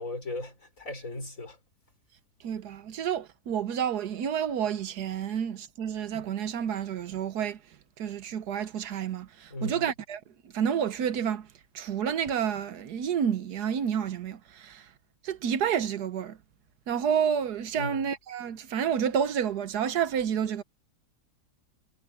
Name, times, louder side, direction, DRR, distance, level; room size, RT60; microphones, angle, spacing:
voice 1, 0.0-1.6 9.5-9.9 17.8-18.0, left 2 dB, 55° left, 5.5 m, -37 dB
voice 2, 2.4-7.6 8.0-10.2 10.5-11.5 11.7-14.8 15.2-16.4 16.9-20.6, right 8 dB, 80° right, 1.5 m, -29 dB
omnidirectional pair, 1.7 m